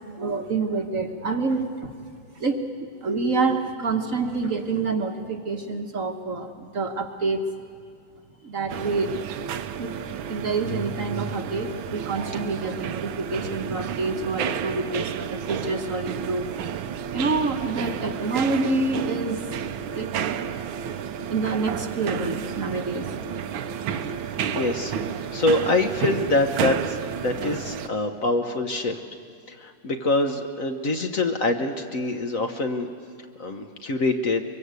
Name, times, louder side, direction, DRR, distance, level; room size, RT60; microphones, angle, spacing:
voice 1, 0.1-1.9 2.3-7.4 8.4-9.1 9.8-10.0 10.3-16.5 17.1-19.5 19.9-20.1 21.3-23.1, right 3 dB, 45° right, 5 dB, 1.3 m, -27 dB
sound 1, 8.7-27.9, right 8 dB, 80° right, 1.6 m, -31 dB
voice 2, 24.5-25.0 25.3-29.0 29.5-32.9 33.4-34.4, left 2 dB, 50° left, 5 dB, 1.3 m, -25 dB
23.5 x 22.5 x 8.2 m, 2.4 s
omnidirectional pair, 2.2 m